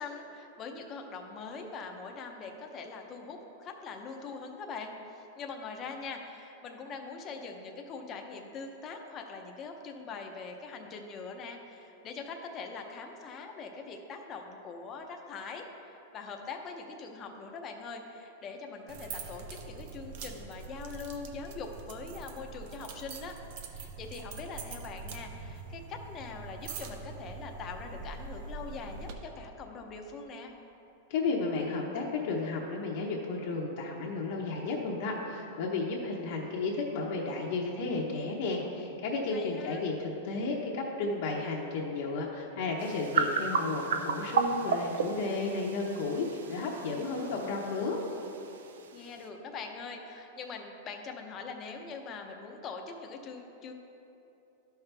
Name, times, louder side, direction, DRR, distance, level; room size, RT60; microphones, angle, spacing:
voice 1, 0.0-23.4 23.7-30.5 39.3-39.8 48.9-53.7, left 4 dB, 25° left, 3 dB, 0.7 m, -42 dB
sound 1, 18.9-29.1, right 4 dB, 50° right, 0.7 m, -44 dB
voice 2, 31.1-48.0, left 3 dB, 55° left, -3 dB, 0.9 m, -33 dB
sound 2, 42.8-49.3, right 5 dB, 90° right, 0.6 m, -34 dB
12.0 x 5.7 x 3.4 m, 3.0 s
supercardioid pair, 165°, 0 cm